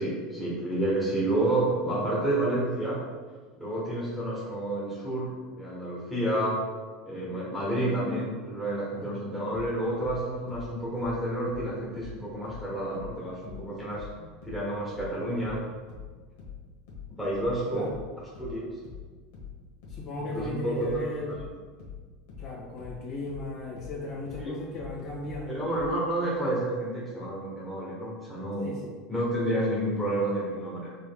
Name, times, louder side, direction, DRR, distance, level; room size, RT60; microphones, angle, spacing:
voice 1, 0.0-3.0 3.6-6.6 7.0-15.6 17.1-17.9 18.4-18.6 20.3-21.0 24.4-24.5 25.5-28.7 29.1-30.9, right 1 dB, ahead, -7 dB, 1.3 m, -30 dB
sound 1, 9.5-12.7 12.9-26.0, left 7 dB, 80° left, 1.4 m, -43 dB
voice 2, 19.9-21.3 22.4-25.7 28.6-28.9, left 2 dB, 45° left, -3 dB, 1.4 m, -36 dB
5.2 x 3.5 x 2.2 m, 1.5 s
supercardioid pair, 130°, 0 cm